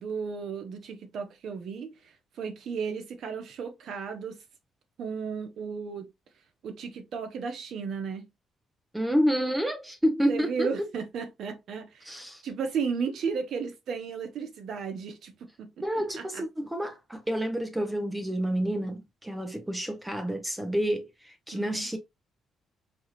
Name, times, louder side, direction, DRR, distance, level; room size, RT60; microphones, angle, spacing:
voice 1, 0.0-1.9 2.4-4.4 5.0-6.1 6.6-8.3 10.3-12.1 12.4-15.3 15.6-15.7 16.3-16.4 21.5-21.9, right 5 dB, 70° right, 1.1 m, -34 dB
voice 2, 8.9-10.7 12.0-12.4 15.8-22.0, equal, 10° right, 0.8 m, -29 dB
4.8 x 2.6 x 3.0 m
cardioid pair, 90°, 0 cm